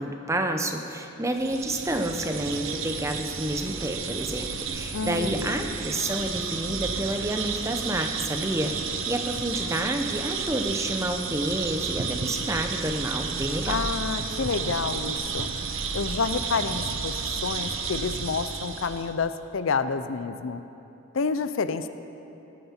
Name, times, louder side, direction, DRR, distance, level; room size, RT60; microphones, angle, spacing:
voice 1, 0.0-8.8 9.1-13.9, right 1 dB, 15° right, 5 dB, 0.6 m, -29 dB
sound 1, 1.3-19.1, right 5 dB, 70° right, 0.9 m, -32 dB
voice 2, 4.9-5.6 13.7-15.5 15.9-20.6 21.1-21.9, left 5 dB, 70° left, 11 dB, 0.5 m, -29 dB
18.0 x 9.3 x 4.4 m, 2.9 s
head